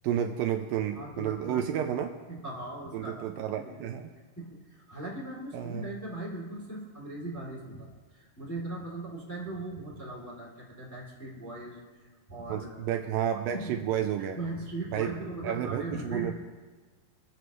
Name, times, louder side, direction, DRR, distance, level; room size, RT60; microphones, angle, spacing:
voice 1, 0.0-2.1 2.9-4.1 5.5-5.9 12.5-14.4 14.9-15.1 15.4-16.3, right 10 dB, 85° right, 5 dB, 2.1 m, -31 dB
voice 2, 0.9-1.9 2.3-3.9 4.4-13.0 13.5-13.7 14.3-16.3, right 2 dB, 5° left, -5 dB, 2.0 m, -39 dB
23.5 x 8.0 x 3.1 m, 1.3 s
omnidirectional pair, 4.4 m